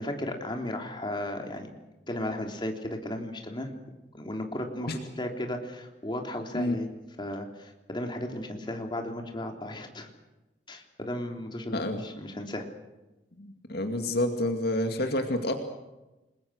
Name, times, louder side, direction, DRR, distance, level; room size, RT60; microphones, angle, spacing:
voice 1, 0.0-1.7 2.1-3.7 4.1-6.9 7.2-10.1 10.7-12.7, left 1 dB, 25° left, 3 dB, 3.5 m, -35 dB
voice 2, 11.7-12.0 13.4-15.5, left 1 dB, 65° left, 5 dB, 2.3 m, -28 dB
29.5 x 21.5 x 6.5 m, 1.0 s
head